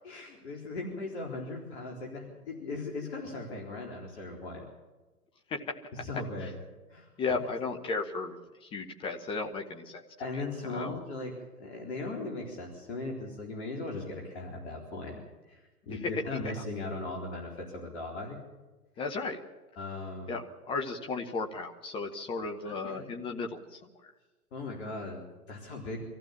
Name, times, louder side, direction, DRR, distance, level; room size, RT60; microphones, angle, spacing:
voice 1, 0.0-4.6 6.0-6.6 6.9-7.1 10.2-11.3 11.6-15.2 15.5-18.4 19.8-20.4 22.6-23.1 24.5-26.0, left 2 dB, 45° left, -1 dB, 4.1 m, -38 dB
voice 2, 7.2-8.3 8.6-10.0 10.3-11.0 16.3-16.4 19.0-19.4 20.3-24.1, left 4 dB, 10° left, 4 dB, 0.9 m, -35 dB
25.5 x 15.0 x 7.3 m, 1.2 s
figure-of-eight pair, 120°, 46 cm